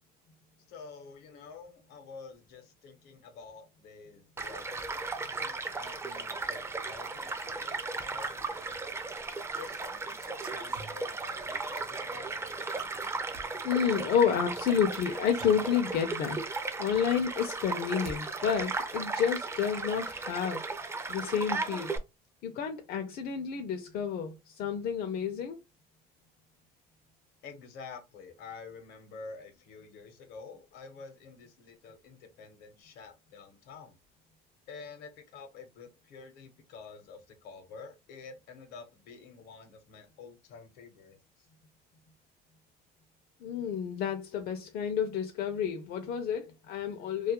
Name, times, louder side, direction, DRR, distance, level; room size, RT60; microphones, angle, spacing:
voice 1, 0.7-8.9 9.6-12.3 27.4-34.0 34.7-41.5, left 5 dB, 85° left, 0.8 m, -49 dB
Child speech kid speaking / Stream / Car passing by, 4.4-22.0, right 3 dB, 15° right, 0.4 m, -36 dB
sound 1, 10.0-11.3 12.8-13.5 14.9-15.0 15.3-16.1 16.5-16.6 16.9-18.2 18.4-18.9, right 3 dB, 70° right, 0.6 m, -48 dB
voice 2, 13.6-16.4 16.8-20.6 21.1-22.0 22.4-25.6 43.4-47.3, left 7 dB, 65° left, 0.5 m, -30 dB
2.3 x 2.2 x 2.8 m
cardioid pair, 110°, 17 cm